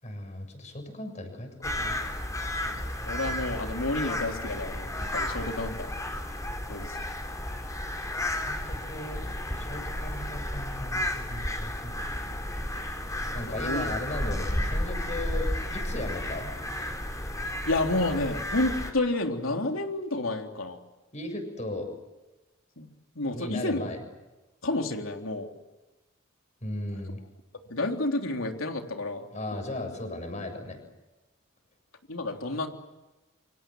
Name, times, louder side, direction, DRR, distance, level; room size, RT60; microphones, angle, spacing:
voice 1, 0.0-2.0 8.5-9.2 9.5-11.9 13.3-16.5 21.1-21.9 23.3-24.0 26.6-27.2 29.3-30.8, left 1 dB, 35° left, 5 dB, 7.2 m, -36 dB
sound 1, 1.6-18.9, left 1 dB, 15° left, 4.5 m, -32 dB
voice 2, 2.6-5.9 6.7-6.9 13.5-13.9 17.7-20.8 22.8-22.9 23.2-23.8 24.6-25.5 27.7-29.6 32.1-32.7, left 2 dB, 90° left, 3 dB, 3.6 m, -30 dB
28.0 x 26.0 x 7.8 m, 1.1 s
head